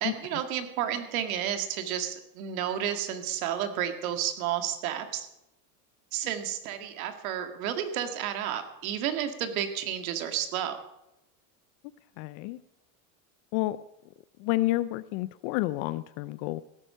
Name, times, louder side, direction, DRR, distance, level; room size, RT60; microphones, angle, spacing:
voice 1, 0.0-5.3 6.1-10.8, right 10 dB, 85° right, 7 dB, 2.1 m, -31 dB
voice 2, 12.2-12.6 13.5-13.8 14.4-16.6, left 18 dB, 60° left, 17 dB, 0.5 m, -29 dB
17.0 x 8.9 x 5.6 m, 0.88 s
supercardioid pair, 135°, 41 cm